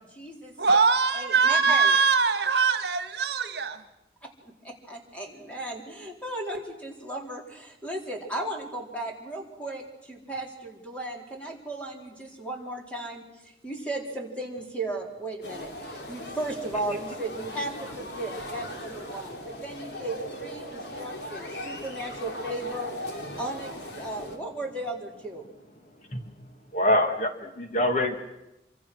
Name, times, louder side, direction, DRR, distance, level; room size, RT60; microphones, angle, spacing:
voice 1, 0.0-0.5 1.1-2.0 4.2-22.9 23.4-25.5, right 1 dB, 5° left, 0 dB, 4.0 m, -36 dB
voice 2, 0.6-3.8, right 5 dB, 65° right, 8 dB, 1.7 m, -22 dB
sound 1, 15.4-24.4, left 1 dB, 65° left, 3.1 m, -38 dB
voice 3, 25.8-26.3 26.7-28.2, left 1 dB, 40° left, 6 dB, 1.7 m, -26 dB
27.0 x 24.5 x 6.3 m, 0.96 s
head